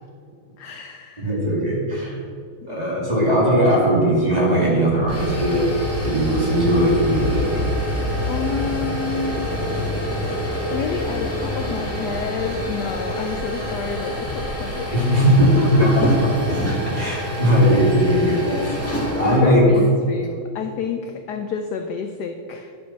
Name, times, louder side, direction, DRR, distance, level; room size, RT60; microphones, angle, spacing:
voice 1, 0.6-1.3 2.6-3.1 8.3-9.5 10.1-16.1 18.4-18.9 19.3-22.7, left 6 dB, 75° left, 5 dB, 0.9 m, -29 dB
voice 2, 1.2-2.2 2.7-5.6 6.0-7.5 14.9-16.1 16.9-18.8 19.2-19.6, equal, 20° right, -6 dB, 2.4 m, -19 dB
sound 1, 5.0-19.4, equal, 10° left, 1.2 m, -26 dB
9.8 x 5.3 x 5.6 m, 2.3 s
omnidirectional pair, 2.3 m